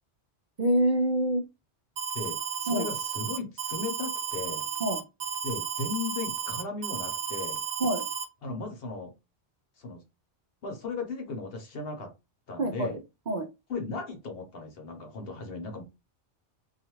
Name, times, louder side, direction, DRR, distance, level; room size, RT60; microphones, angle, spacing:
voice 1, 0.6-1.4 2.7-2.9 4.8-5.0 7.8-8.0 12.6-12.9 13.3-13.5, right 1 dB, 55° right, 0.5 m, -26 dB
Alarm, 2.0-8.2, right 8 dB, 80° right, 0.9 m, -33 dB
voice 2, 2.1-4.7 5.4-7.6 8.4-9.1 9.8-10.0 10.6-12.1 12.5-13.0 13.7-15.8, left 3 dB, 60° left, 1.0 m, -36 dB
2.5 x 2.4 x 2.9 m
omnidirectional pair, 1.1 m